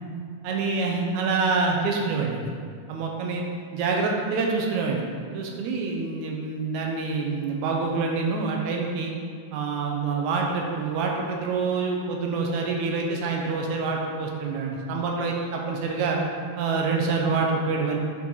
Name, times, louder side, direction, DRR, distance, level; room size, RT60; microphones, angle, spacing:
voice 1, 0.4-2.5 2.9-3.4 3.7-5.0 5.3-9.1 9.5-16.2 16.6-18.0, right 4 dB, 80° right, 0 dB, 2.1 m, -26 dB
5.4 x 5.0 x 3.9 m, 2.1 s
omnidirectional pair, 3.4 m